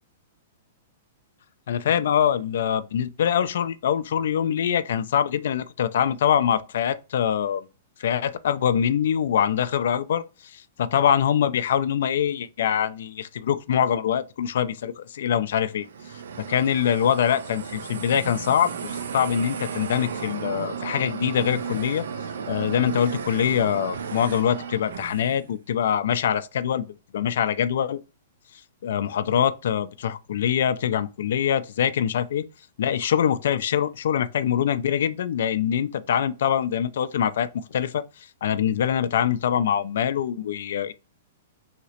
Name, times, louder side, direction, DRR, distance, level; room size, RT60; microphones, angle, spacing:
voice 1, 1.7-7.7 8.0-15.9 16.5-22.1 22.5-26.8 27.1-28.0 28.8-32.5 32.8-38.0 38.4-40.9, left 9 dB, 70° left, 0.4 m, -24 dB
sound 1, 15.7-25.5, right 6 dB, 85° right, 0.4 m, -34 dB
3.1 x 2.8 x 2.8 m
hypercardioid pair, 145°, 0 cm